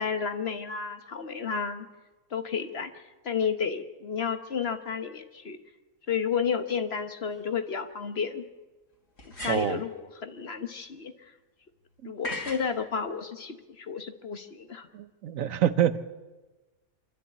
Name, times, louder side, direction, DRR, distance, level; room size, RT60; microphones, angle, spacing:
voice 1, 0.0-1.9 2.3-2.9 3.2-5.6 6.1-8.4 9.4-11.3 12.0-14.9, left 6 dB, 50° left, 9 dB, 1.3 m, -31 dB
sound 1, 7.3-7.4 9.2-9.9 12.2-12.7, left 1 dB, 65° left, 3.6 m, -37 dB
voice 2, 9.5-9.8 12.0-12.1 14.9-16.0, right 10 dB, 70° right, 13 dB, 1.2 m, -26 dB
25.0 x 13.0 x 8.3 m, 1.1 s
omnidirectional pair, 1.5 m